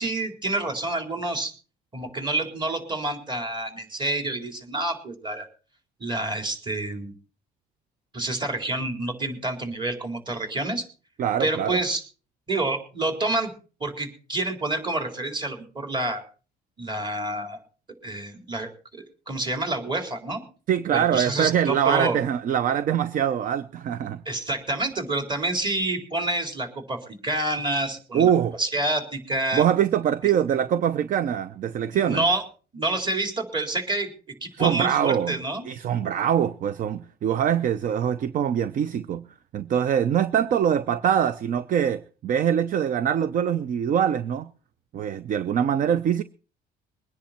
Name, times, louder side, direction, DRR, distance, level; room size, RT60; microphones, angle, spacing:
voice 1, 0.0-1.5 1.9-5.5 6.0-7.1 8.1-10.9 11.4-12.0 12.5-13.5 13.8-16.2 16.8-17.6 18.0-20.4 20.9-22.2 24.3-28.3 28.6-29.6 32.0-32.4 32.7-34.1 34.4-35.7, right 2 dB, 25° right, 4.1 m, -28 dB
voice 2, 11.2-11.8 20.7-24.2 28.1-28.6 29.5-32.3 34.6-35.4 35.7-39.2 39.5-44.5 44.9-46.2, right 9 dB, 50° right, 0.7 m, -23 dB
22.5 x 10.0 x 4.4 m
cardioid pair, 110°, 17 cm